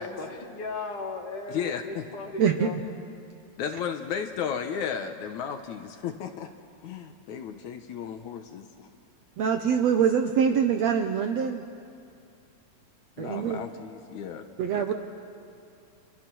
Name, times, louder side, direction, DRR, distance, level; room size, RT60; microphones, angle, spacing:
voice 1, 0.0-2.8, left 3 dB, 50° left, 3 dB, 2.3 m, -36 dB
voice 2, 1.5-2.1 3.6-6.5 6.8-8.9 13.2-14.5 14.7-14.9, left 7 dB, 70° left, 6 dB, 2.2 m, -34 dB
voice 3, 2.4-2.7 9.4-11.6 13.2-13.6 14.6-14.9, right 7 dB, 70° right, 5 dB, 1.7 m, -24 dB
29.5 x 28.5 x 6.2 m, 2.5 s
omnidirectional pair, 3.9 m